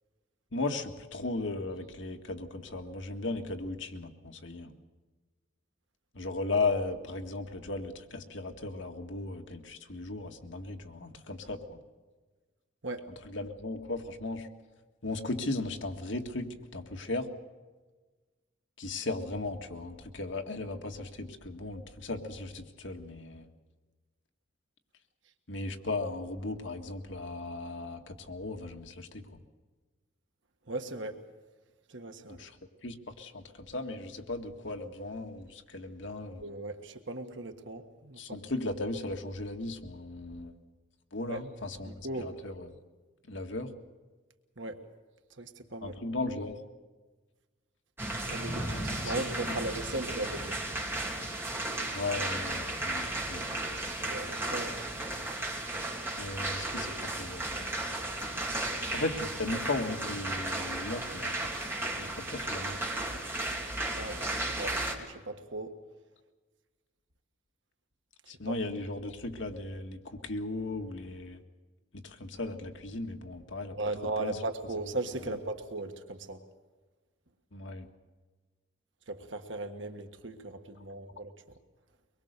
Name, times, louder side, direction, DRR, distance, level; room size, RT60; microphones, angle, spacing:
voice 1, 0.5-4.7 6.1-11.8 13.2-14.5 15.0-17.3 18.8-23.5 25.5-29.4 32.3-32.6 32.8-36.4 38.2-40.6 41.1-42.8 43.3-43.7 45.8-46.6 48.4-49.1 49.5-49.6 51.9-53.5 56.2-57.6 58.9-61.5 62.0-62.8 68.3-71.4 71.9-73.8 74.2-74.4 75.3-75.4 77.5-77.9, left 2 dB, 75° left, 5 dB, 1.9 m, -36 dB
voice 2, 30.7-31.2 31.9-32.4 36.3-38.4 41.2-41.4 41.8-42.3 44.6-44.8 45.4-46.0 48.3-50.6 53.7-54.8 64.0-65.8 68.4-68.6 73.7-76.4 79.1-81.6, right 2 dB, 75° right, 6 dB, 1.6 m, -38 dB
sound 1, 48.0-64.9, right 1 dB, 10° right, 2.8 m, -34 dB
24.0 x 22.0 x 6.8 m, 1.3 s
head